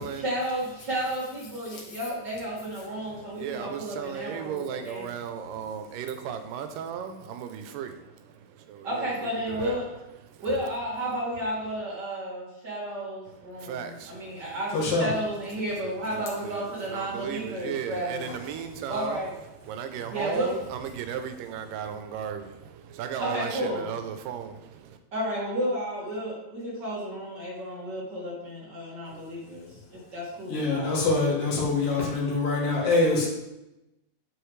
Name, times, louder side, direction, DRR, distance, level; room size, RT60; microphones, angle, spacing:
voice 1, 0.1-5.1 8.8-9.9 10.4-18.3 18.9-19.3 20.1-20.6 23.2-23.9 25.1-31.0, equal, 40° right, 2.1 m, -32 dB
voice 2, 3.1-9.8 10.3-10.4 13.3-14.5 15.8-19.2 19.6-25.0, right 8 dB, 90° right, 2.3 m, -36 dB
voice 3, 14.7-15.1 18.2-18.4 20.0-20.1 29.2-29.3 29.7-29.8 30.5-33.3, left 3 dB, 85° left, 3.5 m, -25 dB
8.0 x 6.7 x 3.2 m
omnidirectional pair, 3.7 m